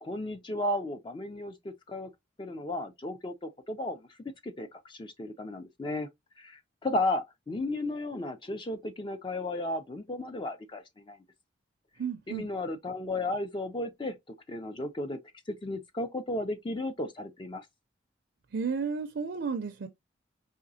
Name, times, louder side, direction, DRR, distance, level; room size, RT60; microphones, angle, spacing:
voice 1, 0.0-2.1 2.4-4.2 4.4-6.1 6.4-11.2 12.3-14.2 14.5-15.2 15.5-17.7, left 2 dB, 25° left, 0.3 m, -34 dB
voice 2, 12.0-12.5 18.5-19.9, right 5 dB, 55° right, 0.4 m, -32 dB
5.0 x 2.9 x 2.6 m
head